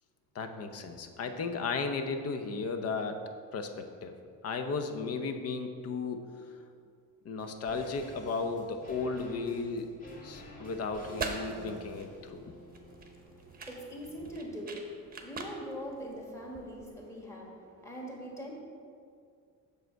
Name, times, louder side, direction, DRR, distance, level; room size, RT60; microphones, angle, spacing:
voice 1, 0.3-4.2 4.4-6.6 7.2-9.9 10.2-12.5, left 4 dB, 45° left, 7 dB, 0.7 m, -35 dB
sound 1, 7.4-16.8 17.0-17.1, left 1 dB, 25° left, 1.7 m, -51 dB
sound 2, 10.9-16.9, right 4 dB, 25° right, 0.9 m, -43 dB
voice 2, 11.9-18.5, equal, 10° left, -2 dB, 1.5 m, -43 dB
7.5 x 6.5 x 4.5 m, 2.3 s
cardioid pair, 140°, 33 cm